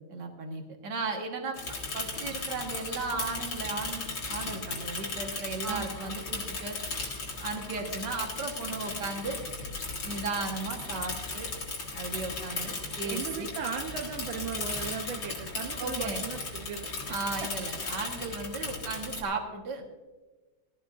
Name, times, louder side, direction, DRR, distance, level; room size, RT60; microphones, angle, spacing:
voice 1, 0.0-6.8 7.4-9.4 10.0-11.5 11.9-13.5 15.8-16.3 17.1-19.8, right 4 dB, 60° right, 2 dB, 2.1 m, -36 dB
Bicycle / Mechanisms, 1.5-19.2, left 3 dB, 70° left, 2.5 m, -36 dB
voice 2, 5.6-6.2 13.0-16.9, right 6 dB, 85° right, 2 dB, 1.7 m, -37 dB
19.0 x 13.0 x 2.6 m, 1.3 s
omnidirectional pair, 2.1 m